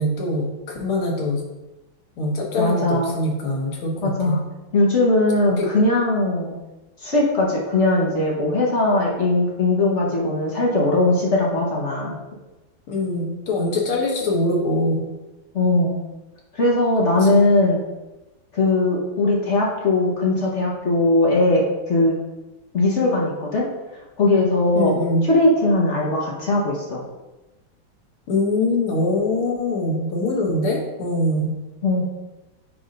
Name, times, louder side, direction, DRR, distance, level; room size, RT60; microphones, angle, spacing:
voice 1, 0.0-1.4 2.2-4.4 5.6-5.7 12.9-15.1 17.3-17.5 24.8-25.2 28.3-31.5, left 2 dB, 80° left, -1 dB, 2.0 m, -23 dB
voice 2, 2.6-3.1 4.0-4.4 4.7-6.5 7.0-12.2 15.5-16.0 16.5-17.8 18.5-22.2 22.7-23.6 24.2-24.9 25.2-27.0 31.8-32.1, left 2 dB, 45° left, -3 dB, 1.1 m, -19 dB
7.8 x 2.6 x 5.1 m, 1.1 s
omnidirectional pair, 2.3 m